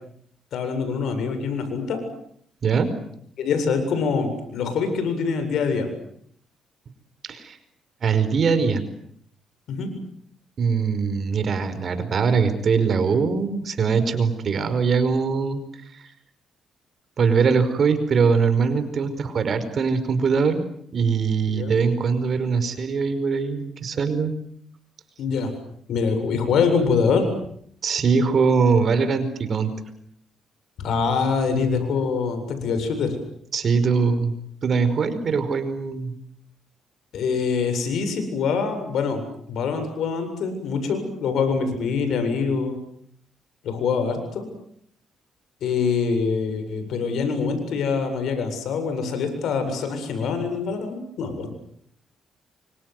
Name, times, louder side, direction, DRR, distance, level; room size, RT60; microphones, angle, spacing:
voice 1, 0.5-2.0 3.4-5.9 9.7-9.9 21.5-21.8 25.2-25.5 25.9-27.3 30.8-33.2 37.1-39.2 39.5-42.8 43.6-44.5 45.6-51.5, left 5 dB, 75° left, 8 dB, 7.7 m, -24 dB
voice 2, 8.0-8.8 10.6-15.6 15.9-16.1 17.2-20.6 20.9-24.3 27.8-29.7 33.5-34.3 34.6-36.1, right 5 dB, 50° right, 11 dB, 5.1 m, -22 dB
29.0 x 25.5 x 8.0 m, 0.67 s
cardioid pair, 90°, 0 cm